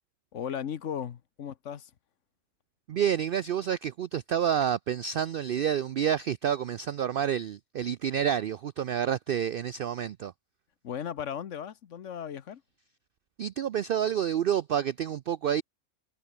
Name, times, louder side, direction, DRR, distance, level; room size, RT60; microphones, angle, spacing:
voice 1, 0.3-1.9 10.8-12.6, left 8 dB, 60° left, 1.2 m, -36 dB
voice 2, 2.9-10.3 13.4-15.6, right 9 dB, 85° right, 0.4 m, -29 dB
omnidirectional pair, 1.5 m